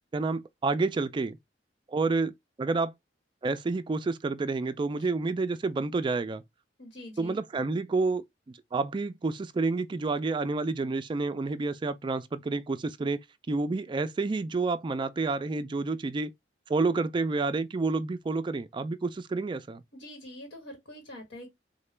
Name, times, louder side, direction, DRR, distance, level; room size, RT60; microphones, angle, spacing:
voice 1, 0.1-1.4 1.9-2.3 2.6-2.9 3.4-6.4 7.2-13.2 13.5-16.3 16.7-19.8, right 3 dB, 25° right, 0.3 m, -29 dB
voice 2, 6.8-7.4 19.9-21.5, left 1 dB, 85° left, 1.1 m, -45 dB
3.9 x 2.2 x 3.2 m
head